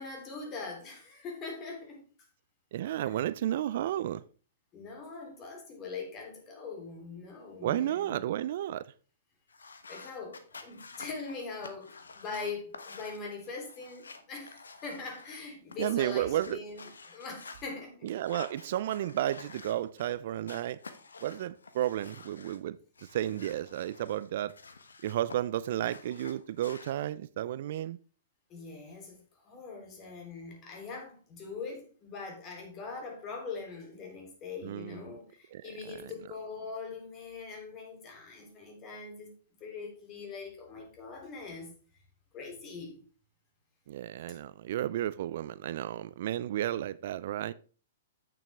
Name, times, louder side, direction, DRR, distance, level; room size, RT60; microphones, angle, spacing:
voice 1, 0.0-2.0 3.0-3.2 4.7-8.2 9.9-18.1 28.5-39.3 39.6-41.7 42.3-43.0 44.4-44.5, left 4 dB, 30° left, 3.3 m, -42 dB
voice 2, 2.7-4.2 7.6-8.9 15.8-16.6 18.0-20.8 21.2-22.8 23.1-24.5 25.0-28.0 34.6-35.1 35.5-35.6 43.9-47.5, right 12 dB, 60° right, 0.4 m, -32 dB
sound 1, 9.5-15.4 15.7-17.6 18.1-20.1 20.5-22.6 22.9-25.4 25.6-26.9, left 4 dB, 85° left, 1.0 m, -50 dB
8.7 x 6.9 x 3.5 m
hypercardioid pair, 120°, 0 cm